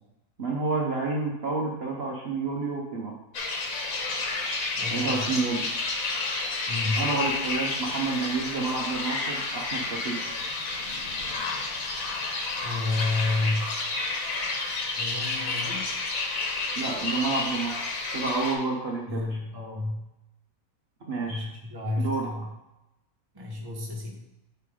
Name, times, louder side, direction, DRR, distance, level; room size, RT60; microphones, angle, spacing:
voice 1, 0.4-3.1 4.9-5.7 7.0-10.2 16.8-17.7 18.1-19.4 21.1-21.5 22.0-22.3, right 3 dB, 50° right, -1 dB, 1.0 m, -29 dB
sound 1, 3.3-18.5, left 3 dB, 80° left, 1.5 m, -30 dB
voice 2, 4.8-5.3 6.7-7.0 12.6-13.7 14.9-15.9 19.1-20.1 21.2-22.5 23.3-24.2, left 2 dB, 20° right, -1 dB, 1.1 m, -30 dB
8.9 x 3.4 x 4.9 m, 0.95 s
omnidirectional pair, 1.4 m